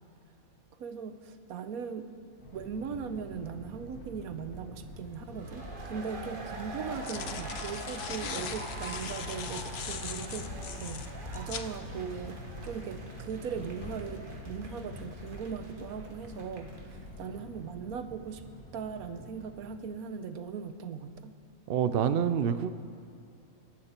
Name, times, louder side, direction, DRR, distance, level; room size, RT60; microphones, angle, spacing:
voice 1, 0.8-2.1 2.5-11.0 11.3-18.4 18.7-21.3, right 6 dB, 80° right, 9 dB, 1.3 m, -39 dB
sound 1, 2.4-19.7, equal, 80° left, 2.4 m, -45 dB
sound 2, 5.3-16.9, right 2 dB, 35° right, 1.5 m, -45 dB
sound 3, 5.7-5.8 6.7-11.7, left 7 dB, 55° left, 0.8 m, -40 dB
voice 2, 21.7-22.7, right 8 dB, 60° right, 12 dB, 0.6 m, -27 dB
27.0 x 11.5 x 4.4 m, 2.6 s
omnidirectional pair, 1.5 m